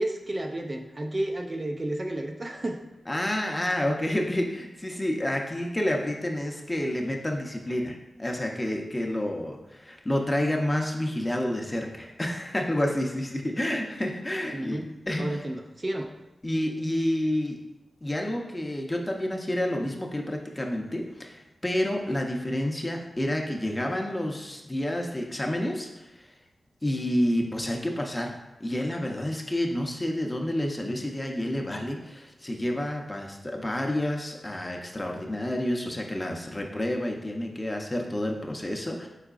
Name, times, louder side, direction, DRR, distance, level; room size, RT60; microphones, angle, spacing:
voice 1, 0.0-2.8 3.3-3.4 14.5-14.9 15.2-16.1, right 1 dB, 30° right, 2 dB, 0.4 m, -31 dB
voice 2, 3.1-14.8 15.1-15.4 16.4-17.6 18.0-26.2 26.8-28.3 28.6-39.1, left 1 dB, 20° left, 1 dB, 0.6 m, -29 dB
4.8 x 4.4 x 2.4 m, 1.0 s
wide cardioid pair, 80°, 0 cm